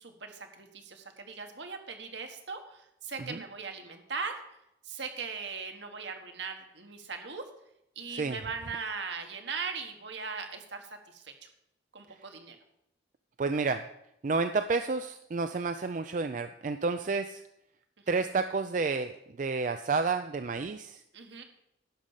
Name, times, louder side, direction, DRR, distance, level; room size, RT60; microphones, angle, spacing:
voice 1, 0.0-4.6 4.8-7.4 7.9-11.5 11.9-12.6 21.1-21.4, right 5 dB, 70° right, 5 dB, 1.5 m, -39 dB
voice 2, 13.4-13.9 14.2-17.4 18.1-21.0, right 4 dB, 40° right, 9 dB, 0.4 m, -30 dB
11.5 x 5.3 x 7.3 m, 0.78 s
head